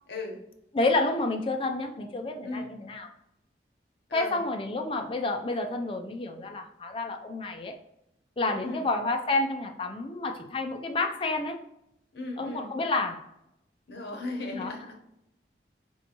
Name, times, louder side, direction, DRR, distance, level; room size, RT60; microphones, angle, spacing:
voice 1, 0.1-0.4 2.4-2.7 4.1-4.4 8.6-8.9 12.1-12.7 13.9-14.9, left 2 dB, 70° left, 1 dB, 0.9 m, -36 dB
voice 2, 0.7-3.1 4.1-7.8 8.4-11.6 12.4-13.3 14.5-14.7, left 2 dB, 30° left, 4 dB, 0.4 m, -29 dB
4.4 x 2.7 x 2.8 m, 0.83 s
head